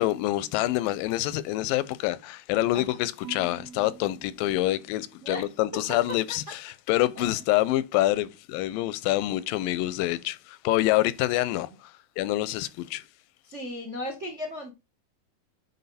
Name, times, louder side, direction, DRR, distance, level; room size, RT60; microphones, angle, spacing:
voice 1, 0.0-13.0, left 16 dB, 85° left, 2.3 m, -26 dB
Marimba xylophone / Wood, 3.2-5.4, right 6 dB, 65° right, 2.2 m, -47 dB
voice 2, 13.4-14.7, left 1 dB, 50° right, 0.8 m, -36 dB
9.4 x 4.2 x 4.1 m
omnidirectional pair, 3.9 m